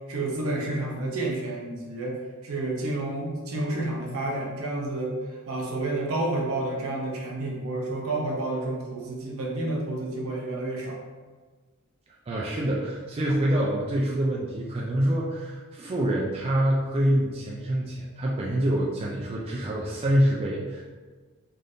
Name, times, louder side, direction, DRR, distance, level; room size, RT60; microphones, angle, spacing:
voice 1, 0.1-5.1 5.5-11.0, right 2 dB, 65° right, -1 dB, 0.7 m, -30 dB
voice 2, 12.3-20.8, right 1 dB, 25° right, -4 dB, 0.3 m, -26 dB
3.4 x 2.5 x 2.6 m, 1.4 s
head